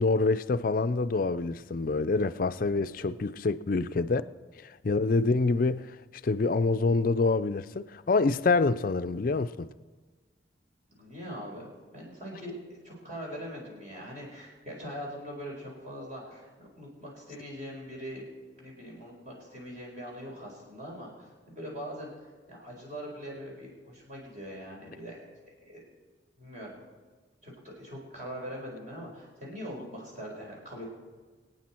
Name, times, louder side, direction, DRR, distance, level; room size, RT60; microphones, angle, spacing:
voice 1, 0.0-4.3 4.6-6.0 6.2-9.7, left 3 dB, 45° left, 0.4 m, -26 dB
voice 2, 11.0-12.5 12.8-18.3 18.6-25.3 25.6-25.8 26.4-26.7 27.4-30.8, equal, 40° right, 4.4 m, -42 dB
24.5 x 9.0 x 4.4 m
head